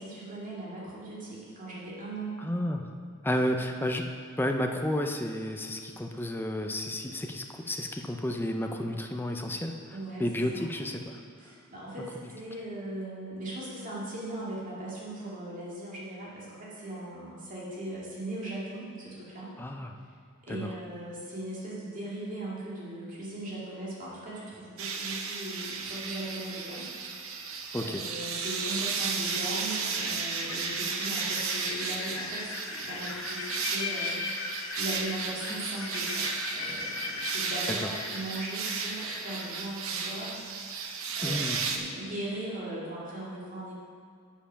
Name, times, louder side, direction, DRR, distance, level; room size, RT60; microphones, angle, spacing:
voice 1, 0.0-2.3 9.9-10.6 11.4-19.5 20.4-26.9 27.8-40.4 41.2-43.7, right 1 dB, 40° right, -7 dB, 2.3 m, -39 dB
voice 2, 2.4-2.8 3.2-4.0 4.4-9.8 10.2-11.2 19.6-19.9 20.5-20.7 27.7-28.0 35.5-35.6 41.2-41.6, left 1 dB, 10° left, 3 dB, 0.5 m, -31 dB
sound 1, 24.8-41.8, right 5 dB, 70° right, 0.8 m, -34 dB
sound 2, 26.7-27.2 28.7-28.8 29.2-39.7, left 4 dB, 70° left, 1.0 m, -39 dB
7.2 x 6.9 x 5.7 m, 2.2 s
head